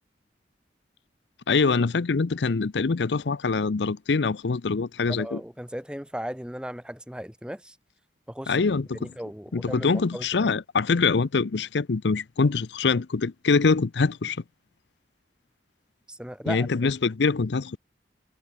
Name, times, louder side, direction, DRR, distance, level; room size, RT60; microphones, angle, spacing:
voice 1, 1.5-5.4 8.5-9.1 9.5-14.4 16.5-17.8, left 4 dB, 80° left, 0.6 m, -24 dB
voice 2, 5.1-7.8 8.3-8.6 9.0-10.5 16.1-16.7, equal, 5° right, 1.9 m, -36 dB
head